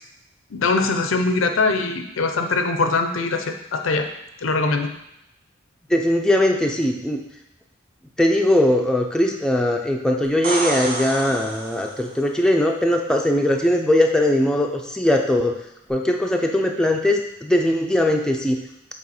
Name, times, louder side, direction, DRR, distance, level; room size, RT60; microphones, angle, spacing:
voice 1, 0.5-4.1 4.4-4.9, left 3 dB, 85° left, 6 dB, 0.6 m, -22 dB
voice 2, 5.9-7.2 8.2-15.5 15.9-18.6, left 1 dB, 5° left, 2 dB, 0.4 m, -20 dB
sound 1, 10.2-12.2 15.9-16.0, right 2 dB, 45° right, 1.1 m, -29 dB
6.3 x 3.5 x 4.3 m, 0.83 s
head